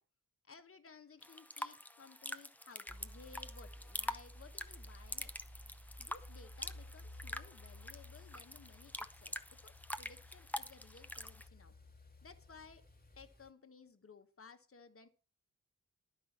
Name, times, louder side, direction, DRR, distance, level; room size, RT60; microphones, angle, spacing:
voice 1, 0.4-5.4 6.0-11.7 12.2-12.9 13.2-15.1, left 5 dB, 40° left, 9 dB, 1.2 m, -58 dB
sound 1, 1.2-11.5, left 1 dB, 5° left, 0.6 m, -46 dB
sound 2, 2.9-13.5, left 1 dB, 25° left, 2.0 m, -55 dB
11.5 x 5.5 x 7.2 m, 0.36 s
wide cardioid pair, 140°, 33 cm